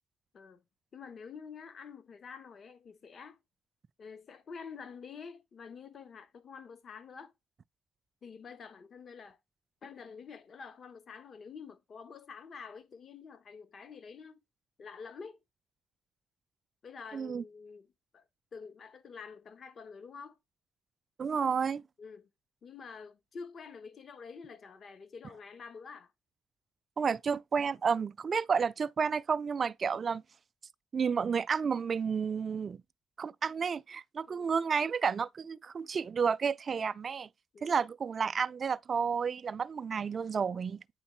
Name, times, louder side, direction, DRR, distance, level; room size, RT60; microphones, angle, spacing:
voice 1, 0.9-3.4 4.0-7.3 8.2-9.4 9.8-14.4 14.8-15.4 16.8-17.9 18.1-18.2 18.5-20.4 22.0-22.3 22.6-26.1 34.3-34.5 37.5-37.7, left 5 dB, 50° left, 1.1 m, -48 dB
voice 2, 17.1-17.4 21.2-21.8 27.0-30.2 30.9-32.8 33.2-37.3 37.6-40.8, right 6 dB, 45° right, 0.4 m, -31 dB
8.7 x 3.8 x 4.3 m
cardioid pair, 90°, 0 cm